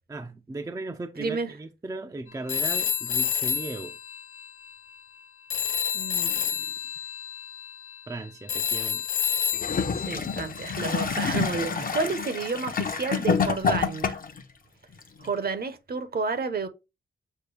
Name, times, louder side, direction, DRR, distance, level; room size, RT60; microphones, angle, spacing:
voice 1, 0.1-4.0 8.1-9.0 11.8-11.9, right 2 dB, 15° right, 0.4 m, -37 dB
voice 2, 1.2-1.5 5.9-6.5 9.9-14.2 15.2-16.7, right 4 dB, 50° right, 0.8 m, -31 dB
Telephone, 2.5-5.2 5.5-10.8, left 8 dB, 90° left, 0.5 m, -30 dB
Gurgling / Toilet flush, 9.5-14.4 15.2-15.3, left 5 dB, 45° left, 0.7 m, -28 dB
6.6 x 2.2 x 3.1 m
cardioid pair, 80°, 21 cm